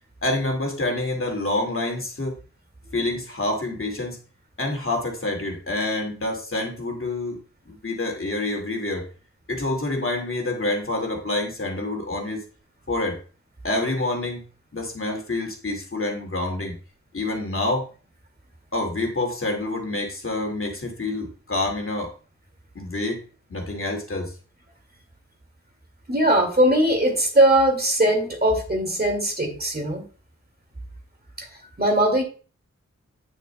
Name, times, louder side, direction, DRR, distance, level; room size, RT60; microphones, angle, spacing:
voice 1, 0.2-2.4 2.9-4.2 4.6-7.4 7.7-9.1 9.5-12.4 12.9-13.2 13.6-14.4 14.7-16.7 17.1-17.8 18.7-22.1 22.8-23.2 23.5-24.3, left 2 dB, 45° left, 2 dB, 2.2 m, -27 dB
voice 2, 26.1-30.0 31.4-31.5 31.8-32.2, right 1 dB, 35° right, 2 dB, 2.1 m, -20 dB
9.3 x 6.6 x 2.2 m, 0.38 s
wide cardioid pair, 60°, 29 cm